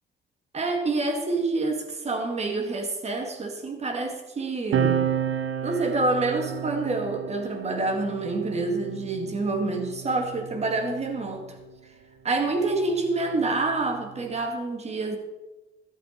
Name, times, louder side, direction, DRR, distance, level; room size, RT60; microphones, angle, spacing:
voice 1, 0.5-5.0 5.6-11.5 12.2-15.2, right 3 dB, 35° right, 5 dB, 2.2 m, -27 dB
sound 1, 4.7-11.6 12.6-14.5, right 9 dB, 85° right, 1.1 m, -32 dB
14.0 x 12.0 x 4.6 m, 1.1 s
cardioid pair, 135°, 19 cm